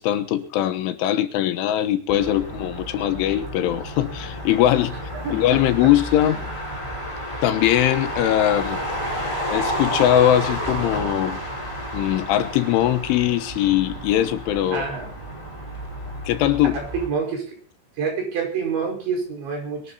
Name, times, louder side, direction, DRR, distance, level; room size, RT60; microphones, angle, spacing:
voice 1, 0.0-6.5 7.4-8.8 9.5-11.4 11.9-14.9 16.3-16.8, left 12 dB, 80° left, 9 dB, 3.6 m, -21 dB
Motor vehicle (road), 2.1-17.1, equal, 5° left, 4.5 m, -31 dB
voice 2, 14.7-15.1 16.7-17.6 18.0-19.9, right 5 dB, 65° right, 1 dB, 7.5 m, -27 dB
22.0 x 12.5 x 4.2 m, 0.38 s
omnidirectional pair, 5.6 m